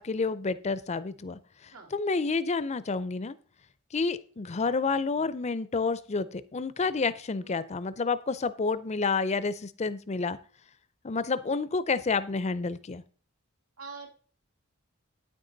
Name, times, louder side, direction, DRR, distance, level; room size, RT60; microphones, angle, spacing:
voice 1, 0.0-1.4 1.9-3.3 3.9-10.4 11.0-13.0, left 4 dB, 30° left, 15 dB, 0.5 m, -29 dB
voice 2, 13.8-14.1, right 4 dB, 80° right, 1 dB, 2.4 m, -44 dB
9.1 x 9.0 x 3.9 m, 0.42 s
head